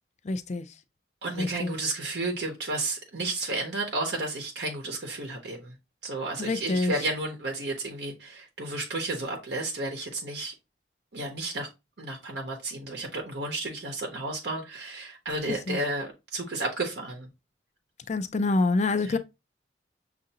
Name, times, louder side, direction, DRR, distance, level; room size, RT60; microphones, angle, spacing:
voice 1, 0.3-0.7 1.3-1.7 6.4-6.9 15.7-15.8 18.1-19.2, left 3 dB, 40° left, 0.4 m, -26 dB
voice 2, 1.2-5.7 6.0-10.5 11.1-11.7 12.0-17.3 19.0-19.2, right 2 dB, 70° right, 0.8 m, -32 dB
6.5 x 2.5 x 2.8 m
head